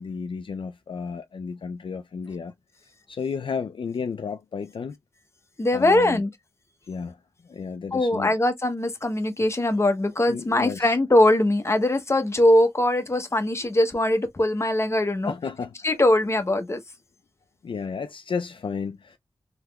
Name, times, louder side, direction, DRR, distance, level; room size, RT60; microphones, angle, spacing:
voice 1, 0.0-2.5 2.8-5.0 5.7-6.2 6.9-8.3 10.3-11.0 15.2-16.0 17.6-19.2, left 5 dB, 60° left, 0.3 m, -33 dB
voice 2, 5.6-6.3 7.9-15.3 15.8-16.8, left 1 dB, 30° left, 0.7 m, -21 dB
3.4 x 2.9 x 2.2 m
wide cardioid pair, 75°, 10 cm